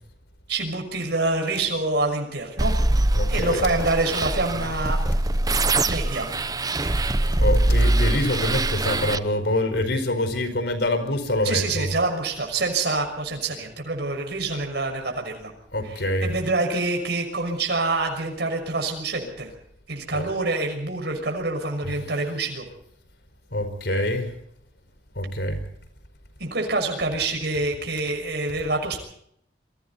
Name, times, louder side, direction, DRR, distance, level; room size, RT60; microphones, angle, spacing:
voice 1, 0.5-2.8 3.3-5.0 5.9-6.3 11.4-15.5 15.8-19.5 19.9-22.7 26.4-29.0, right 3 dB, 65° right, 3 dB, 6.1 m, -26 dB
sound 1, 2.6-9.2, right 2 dB, 20° right, 0.8 m, -23 dB
voice 2, 3.1-3.6 7.4-11.9 15.7-16.3 20.1-20.3 21.8-22.0 23.5-24.3 25.1-25.6, left 1 dB, 65° left, 9 dB, 4.9 m, -25 dB
28.5 x 23.0 x 4.2 m, 0.71 s
head